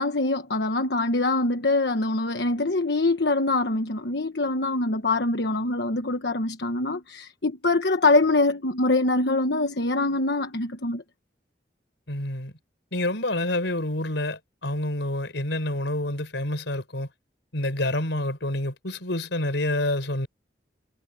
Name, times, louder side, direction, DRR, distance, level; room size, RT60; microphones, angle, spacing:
voice 1, 0.0-11.0, left 2 dB, 65° left, 1.3 m, -24 dB
voice 2, 12.1-12.5 12.9-17.1 17.5-20.3, left 1 dB, 85° left, 4.6 m, -28 dB
head